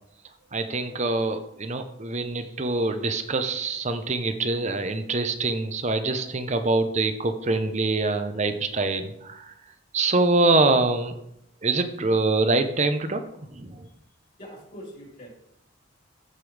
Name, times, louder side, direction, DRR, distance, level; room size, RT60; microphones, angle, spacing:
voice 1, 0.5-9.5 9.9-11.2 11.6-13.2 13.6-13.8, right 3 dB, 35° right, 8 dB, 0.8 m, -24 dB
voice 2, 14.4-15.3, equal, 40° left, -4 dB, 4.0 m, -42 dB
14.0 x 5.5 x 3.4 m, 0.78 s
head